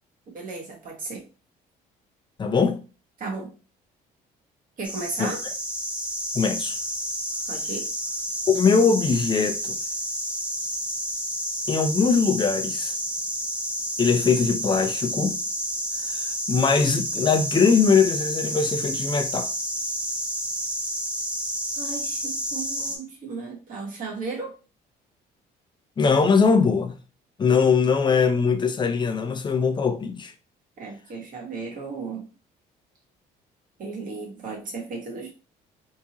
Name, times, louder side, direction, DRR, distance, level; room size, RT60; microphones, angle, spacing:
voice 1, 0.3-1.2 3.2-3.5 4.8-5.4 7.5-7.9 21.8-24.5 30.8-32.3 33.8-35.3, right 4 dB, 55° right, 1.5 m, -35 dB
voice 2, 2.4-2.8 5.2-5.3 6.3-6.8 8.5-9.7 11.7-12.9 14.0-15.4 16.1-19.5 26.0-26.9 27.4-30.3, left 5 dB, 25° left, 0.5 m, -21 dB
sound 1, 4.8-23.0, equal, 5° right, 0.8 m, -30 dB
3.6 x 2.7 x 3.0 m
cardioid pair, 110°, 17 cm